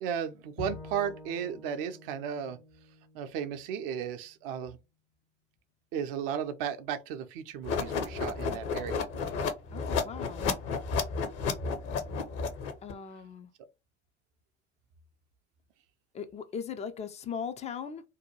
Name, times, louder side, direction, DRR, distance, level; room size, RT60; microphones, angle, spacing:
voice 1, 0.0-2.6 3.1-4.8 5.9-9.1, right 8 dB, 55° right, 0.5 m, -35 dB
Bowed string instrument, 0.6-3.8, left 1 dB, 65° left, 1.1 m, -47 dB
sound 1, 7.6-12.9, left 5 dB, 45° left, 0.7 m, -32 dB
voice 2, 9.7-10.5 12.8-13.5 16.1-18.0, left 7 dB, 20° left, 0.3 m, -39 dB
2.6 x 2.2 x 2.9 m
figure-of-eight pair, 60°, 34 cm